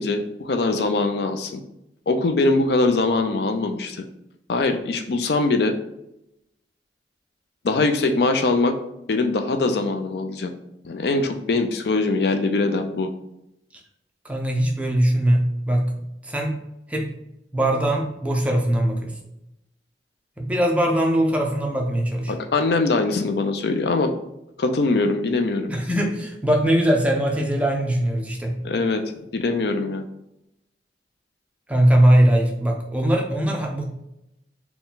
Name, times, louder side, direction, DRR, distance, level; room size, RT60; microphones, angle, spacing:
voice 1, 0.0-1.6 2.1-4.1 4.5-5.8 7.6-8.8 9.1-10.5 10.8-13.1 22.3-24.2 24.6-25.7 28.6-29.0 29.3-30.0, left 3 dB, 65° left, 6 dB, 0.4 m, -22 dB
voice 2, 14.2-15.9 16.2-16.6 16.9-17.1 17.5-19.1 20.4-22.3 25.7-28.6 31.7-33.8, right 1 dB, 10° right, 1 dB, 0.5 m, -21 dB
4.2 x 2.2 x 3.8 m, 0.84 s
head